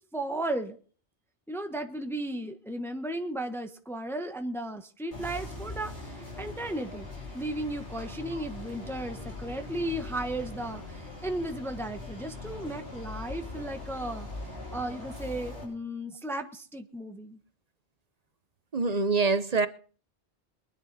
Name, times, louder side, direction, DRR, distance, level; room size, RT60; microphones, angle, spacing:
voice 1, 0.1-0.8 1.5-7.1 7.3-14.3 14.7-17.4, right 1 dB, ahead, 1.1 m, -35 dB
sound 1, 5.1-15.6, left 2 dB, 85° left, 6.2 m, -41 dB
voice 2, 18.7-19.7, right 4 dB, 40° right, 0.8 m, -25 dB
23.0 x 10.5 x 4.1 m
omnidirectional pair, 1.1 m